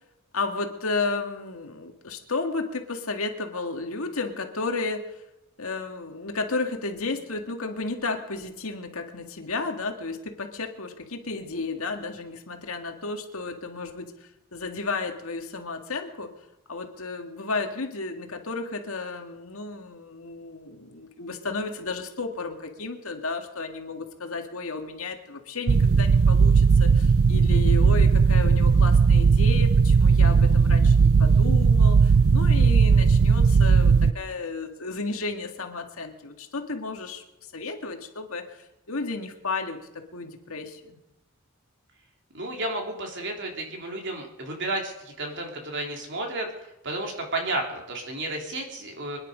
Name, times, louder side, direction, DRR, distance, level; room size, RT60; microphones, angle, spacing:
voice 1, 0.3-5.2 5.6-16.3 16.7-37.2 37.5-41.0, left 3 dB, 75° left, 4 dB, 2.0 m, -33 dB
sound 1, 25.7-34.1, right 5 dB, 70° right, 0.5 m, -18 dB
voice 2, 42.3-49.2, right 2 dB, 55° right, 1 dB, 3.5 m, -32 dB
25.0 x 10.5 x 5.1 m, 0.92 s
head